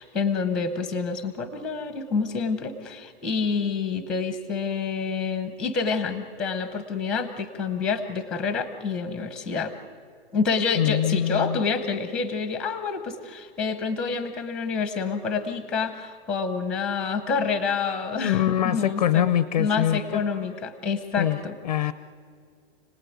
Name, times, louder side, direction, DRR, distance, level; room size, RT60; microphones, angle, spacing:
voice 1, 0.0-9.7 10.3-19.2 19.6-21.5, left 5 dB, 5° left, 10 dB, 0.9 m, -28 dB
voice 2, 10.8-11.6 18.2-20.2 21.2-21.4 21.6-21.9, left 11 dB, 35° left, 14 dB, 0.6 m, -23 dB
30.0 x 19.0 x 9.5 m, 2.2 s
hypercardioid pair, 180°, 33 cm